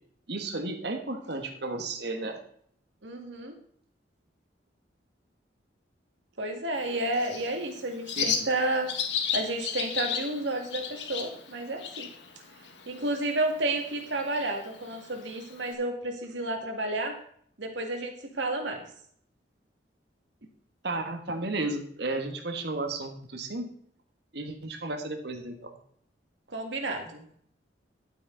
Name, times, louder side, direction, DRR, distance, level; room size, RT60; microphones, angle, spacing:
voice 1, 0.3-2.4 8.2-8.5 20.8-23.7 24.3-25.8, right 2 dB, 65° right, 5 dB, 1.4 m, -33 dB
voice 2, 3.0-3.6 6.4-8.9 9.3-12.1 12.9-17.2 17.6-18.8 26.5-27.2, right 2 dB, 85° right, 4 dB, 2.1 m, -31 dB
Bird, 6.8-15.7, left 7 dB, 75° left, 1.5 m, -35 dB
11.5 x 8.5 x 3.9 m, 0.63 s
head